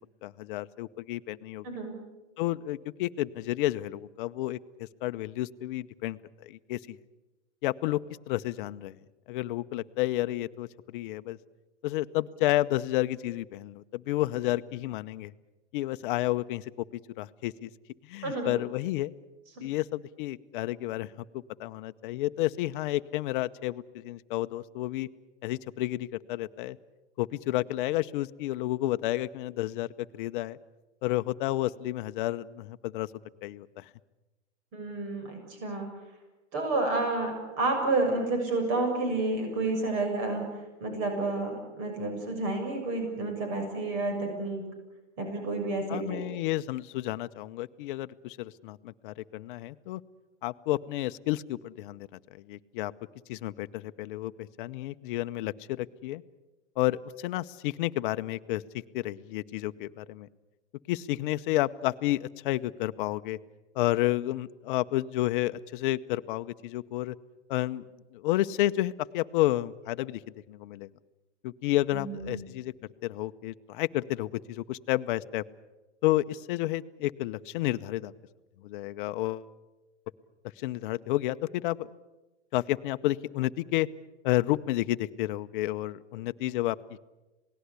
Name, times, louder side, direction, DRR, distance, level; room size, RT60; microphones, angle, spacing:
voice 1, 0.2-1.6 2.4-4.6 5.0-7.0 7.6-8.0 8.3-9.0 9.3-11.4 11.8-15.3 15.7-16.7 17.2-17.7 18.1-19.1 19.6-21.1 21.6-25.1 25.4-26.8 27.2-30.6 31.0-33.1 33.4-33.8 45.9-50.0 50.4-52.1 52.5-52.9 53.3-56.2 56.8-60.3 60.9-63.4 63.7-67.1 67.5-67.8 68.1-70.2 70.5-70.9 71.4-72.7 73.0-75.4 76.0-78.1 78.6-79.5 80.6-81.9 82.5-83.9 84.2-87.0, left 16 dB, 45° left, 12 dB, 0.9 m, -31 dB
voice 2, 1.6-2.0 18.2-18.5 34.7-35.9 36.5-44.6 45.2-46.2 71.9-72.4, right 2 dB, 40° right, 4 dB, 6.9 m, -30 dB
27.5 x 18.5 x 8.3 m, 1.1 s
hypercardioid pair, 135°, 35 cm